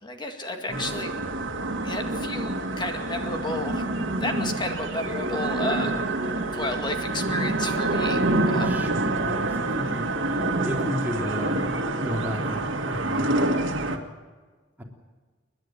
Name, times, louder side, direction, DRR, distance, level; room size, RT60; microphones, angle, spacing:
voice 1, 0.0-1.1 1.8-3.8 4.2-5.9 6.5-8.8, left 2 dB, 25° left, 4 dB, 2.1 m, -32 dB
sound 1, 0.7-14.0, right 2 dB, 85° right, 1.9 m, -27 dB
voice 2, 8.6-11.7 12.0-13.7 14.8-14.9, equal, 10° right, -1 dB, 3.3 m, -34 dB
30.0 x 10.5 x 9.2 m, 1.4 s
head